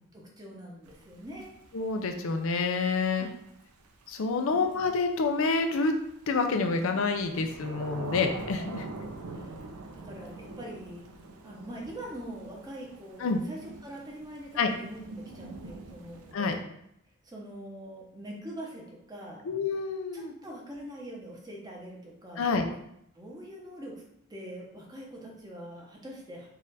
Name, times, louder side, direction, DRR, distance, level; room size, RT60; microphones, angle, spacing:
voice 1, 0.1-1.5 3.1-3.3 4.3-4.7 9.3-9.5 9.9-11.0 11.4-16.7 17.2-19.4 20.1-22.4 23.1-24.0 24.3-26.5, right 1 dB, 20° right, -2 dB, 0.8 m, -43 dB
Thunder / Rain, 0.9-16.3, right 2 dB, 85° right, 0.5 m, -44 dB
voice 2, 1.7-3.3 4.1-5.9 6.3-8.9 13.2-13.4 14.6-14.7 16.3-16.6 19.4-20.3 22.4-22.6, left 4 dB, 65° left, 5 dB, 0.4 m, -28 dB
4.0 x 2.4 x 4.0 m, 0.75 s
head